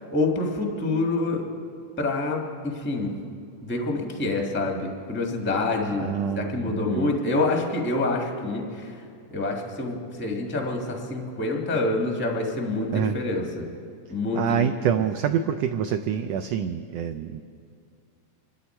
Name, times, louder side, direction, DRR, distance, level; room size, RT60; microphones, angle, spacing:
voice 1, 0.0-1.4 2.0-3.1 3.6-9.0 9.3-13.7 14.1-14.6 14.9-15.0, left 2 dB, 10° left, 1 dB, 0.6 m, -27 dB
voice 2, 6.0-7.1 12.9-13.2 14.3-17.4, right 8 dB, 85° right, 9 dB, 1.4 m, -26 dB
25.5 x 13.0 x 4.4 m, 2.4 s
omnidirectional pair, 3.5 m